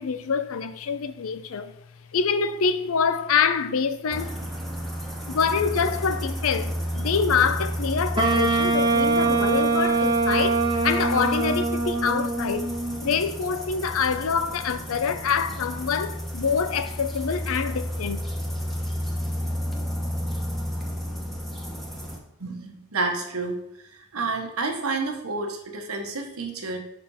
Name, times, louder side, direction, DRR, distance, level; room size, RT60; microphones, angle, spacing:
voice 1, 0.0-1.7 2.1-4.4 5.3-12.7 13.0-18.2, left 6 dB, 70° left, 0.5 m, -25 dB
sound 1, 4.1-22.2, equal, ahead, 1.0 m, -32 dB
Wind instrument woodwind instrument, 8.2-13.2, right 3 dB, 20° right, 0.7 m, -23 dB
voice 2, 22.4-23.6 24.1-26.8, right 3 dB, 85° right, 1.2 m, -29 dB
5.9 x 4.4 x 5.5 m
head